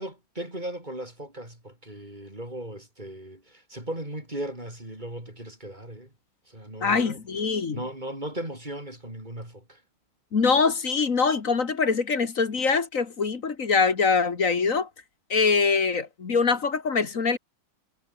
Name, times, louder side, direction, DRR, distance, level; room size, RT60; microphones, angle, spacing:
voice 1, 0.0-6.1 6.5-7.2 7.7-9.8, right 1 dB, 20° right, 8.3 m, -37 dB
voice 2, 6.8-7.8 10.3-14.9 15.3-17.4, left 5 dB, 40° left, 2.0 m, -23 dB
omnidirectional pair, 2.2 m